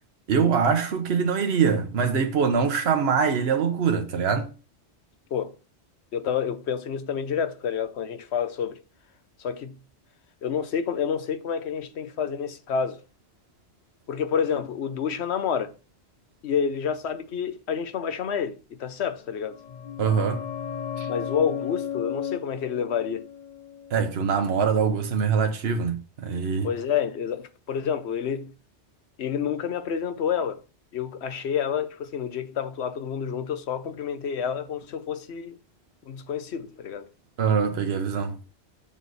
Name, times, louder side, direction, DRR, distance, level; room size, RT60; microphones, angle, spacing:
voice 1, 0.3-4.5 20.0-20.4 21.0-21.1 23.9-26.7 37.4-38.3, right 6 dB, 70° right, 1.2 m, -23 dB
voice 2, 6.1-8.8 9.4-9.8 10.4-13.0 14.1-15.7 16.4-19.6 21.1-23.3 26.6-28.5 29.2-30.6 30.9-35.6 36.1-37.1, left 7 dB, 75° left, 1.1 m, -29 dB
sound 1, 19.3-24.7 25.0-25.1, left 8 dB, 45° left, 0.9 m, -35 dB
7.3 x 6.2 x 4.0 m
omnidirectional pair, 1.1 m